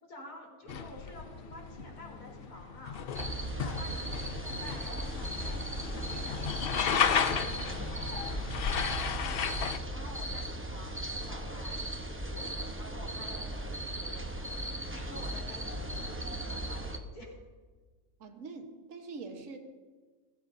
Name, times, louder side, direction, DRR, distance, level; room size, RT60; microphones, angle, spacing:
voice 1, 0.0-3.0 3.3-8.5 9.0-17.4, left 1 dB, 80° left, -3 dB, 4.5 m, -50 dB
sound 1, 0.6-9.4, left 1 dB, 25° left, 2.5 m, -57 dB
sound 2, 0.7-9.8, left 7 dB, 55° left, 0.7 m, -34 dB
sound 3, 3.1-17.0, right 1 dB, 10° right, 0.6 m, -37 dB
voice 2, 18.2-19.6, right 4 dB, 55° right, 4 dB, 1.6 m, -44 dB
22.0 x 14.5 x 2.7 m, 1.4 s
omnidirectional pair, 1.6 m